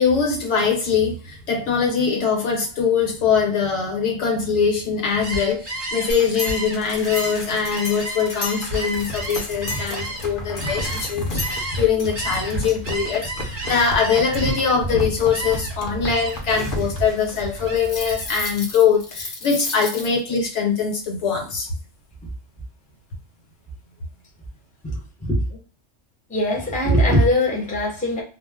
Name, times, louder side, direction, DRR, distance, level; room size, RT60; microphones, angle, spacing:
voice 1, 0.0-21.7, left 6 dB, 70° left, 2 dB, 1.1 m, -22 dB
Gull seagull, 5.1-11.9 12.1-14.9 15.3-15.8 16.1-16.5 16.9-18.4, right 1 dB, 35° right, 1.0 m, -32 dB
sound 1, 6.1-20.4, left 1 dB, 50° left, 0.8 m, -31 dB
voice 2, 24.8-25.4 26.3-28.2, equal, 10° left, -2 dB, 0.7 m, -20 dB
2.5 x 2.1 x 3.3 m, 0.38 s
omnidirectional pair, 1.3 m